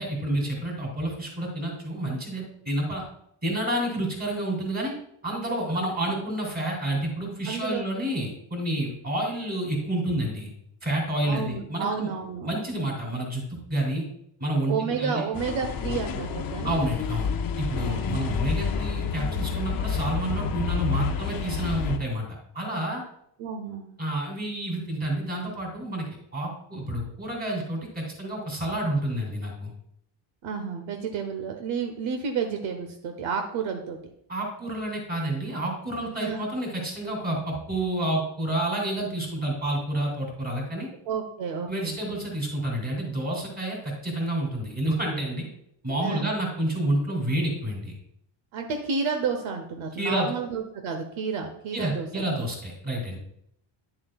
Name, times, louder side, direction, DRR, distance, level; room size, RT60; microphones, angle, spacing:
voice 1, 0.0-3.0 3.4-4.9 5.2-10.5 10.8-12.1 12.4-14.0 14.4-15.2 16.6-22.3 22.5-23.0 24.0-29.7 34.3-40.9 41.7-45.5 45.8-47.9 50.0-50.3 51.7-53.2, right 1 dB, 20° right, -1 dB, 2.9 m, -29 dB
voice 2, 7.5-7.8 11.2-12.5 14.7-16.8 17.7-18.4 23.4-23.9 30.4-34.0 36.2-36.5 41.1-42.0 46.0-46.3 48.5-52.3, right 5 dB, 70° right, 5 dB, 1.0 m, -31 dB
sound 1, 15.3-22.0, left 6 dB, 45° left, 0.6 m, -29 dB
10.0 x 7.4 x 2.4 m, 0.73 s
cardioid pair, 150°, 49 cm